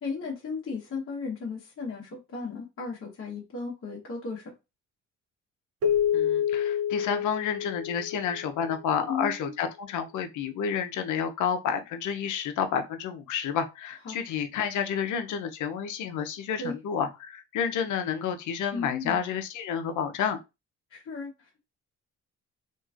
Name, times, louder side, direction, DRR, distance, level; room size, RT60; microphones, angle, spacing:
voice 1, 0.0-4.5 9.1-9.5 14.0-14.2 16.6-16.8 18.7-19.2 20.9-21.6, left 4 dB, 45° left, 1.1 m, -35 dB
Keyboard (musical), 5.8-8.8, left 9 dB, 50° right, 0.5 m, -28 dB
voice 2, 6.1-20.4, left 7 dB, 80° left, 0.6 m, -30 dB
3.0 x 2.5 x 2.4 m
cardioid pair, 90°, 30 cm